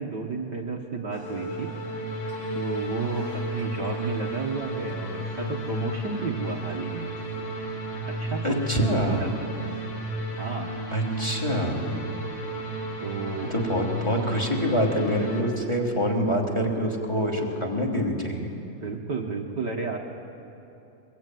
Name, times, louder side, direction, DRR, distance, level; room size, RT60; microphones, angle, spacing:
voice 1, 0.0-1.7 2.5-7.1 8.1-8.6 9.2-9.3 10.4-10.7 13.0-13.5 18.8-20.0, right 4 dB, 55° right, 1 dB, 1.2 m, -32 dB
sound 1, 1.1-15.4, right 1 dB, 55° left, 4.1 m, -33 dB
voice 2, 8.4-9.2 10.9-11.9 13.5-18.5, equal, 10° left, 0 dB, 2.6 m, -25 dB
23.5 x 22.0 x 9.3 m, 3.0 s
omnidirectional pair, 3.7 m